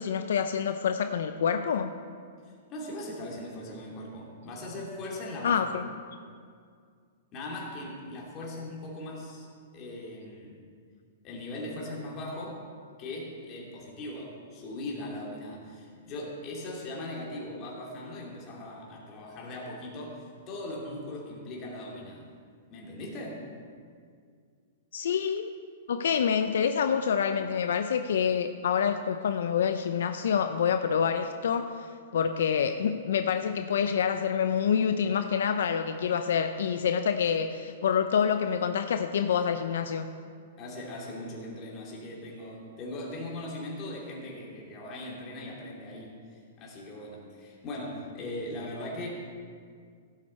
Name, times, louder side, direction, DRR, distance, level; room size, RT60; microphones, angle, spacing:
voice 1, 0.0-1.9 5.4-5.9 24.9-25.5 25.9-31.6 32.1-40.1, left 7 dB, 80° left, 8 dB, 0.5 m, -27 dB
voice 2, 2.4-5.9 7.3-9.5 9.7-10.6 11.2-12.6 13.0-22.3 22.7-23.4 40.6-49.1, left 1 dB, 30° left, -2 dB, 2.7 m, -39 dB
16.0 x 7.4 x 4.4 m, 2.1 s
hypercardioid pair, 155°, 0 cm